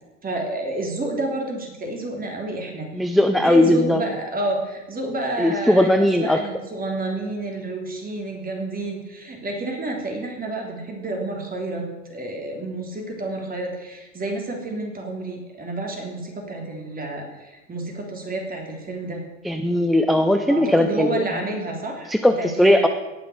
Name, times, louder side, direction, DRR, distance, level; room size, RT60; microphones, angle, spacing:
voice 1, 0.2-2.9 3.5-11.8 12.1-19.2 20.5-22.1 22.4-22.9, right 1 dB, 20° right, 1 dB, 3.2 m, -29 dB
voice 2, 2.9-4.0 5.4-6.4 19.4-21.2 22.1-22.9, left 1 dB, ahead, 7 dB, 0.3 m, -18 dB
18.0 x 6.0 x 5.0 m, 1.1 s
hypercardioid pair, 95°, 38 cm